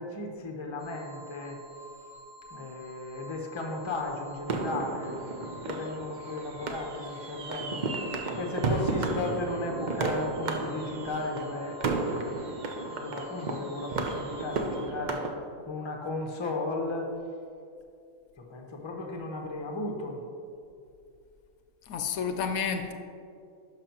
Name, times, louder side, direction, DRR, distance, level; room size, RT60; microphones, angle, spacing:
voice 1, 0.0-1.6 2.5-7.9 8.3-11.8 12.2-17.1 18.4-20.2, left 2 dB, 25° left, 1 dB, 0.7 m, -35 dB
sound 1, 0.8-14.8, left 1 dB, 25° right, 1.4 m, -49 dB
sound 2, 4.5-15.3, right 3 dB, 55° right, 0.5 m, -33 dB
voice 2, 21.9-22.9, left 6 dB, 75° left, 7 dB, 1.0 m, -30 dB
11.0 x 6.0 x 2.9 m, 2.5 s
omnidirectional pair, 1.5 m